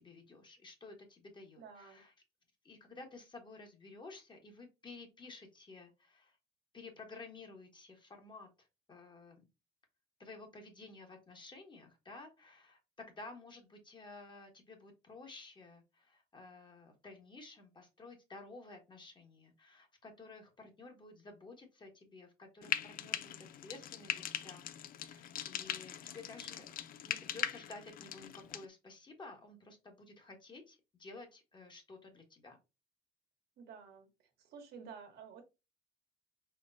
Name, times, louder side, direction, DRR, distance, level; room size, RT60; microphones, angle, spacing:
voice 1, 0.0-2.1 2.6-6.4 6.7-9.5 10.2-24.6 25.0-26.7 27.1-32.6, left 3 dB, 25° left, 4 dB, 1.3 m, -53 dB
voice 2, 1.6-2.0 33.6-34.1 34.4-35.4, right 6 dB, 70° right, 4 dB, 1.3 m, -51 dB
Frying (food), 22.6-28.7, left 11 dB, 55° left, 0.5 m, -41 dB
4.4 x 3.0 x 2.6 m, 0.26 s
cardioid pair, 110°, 17 cm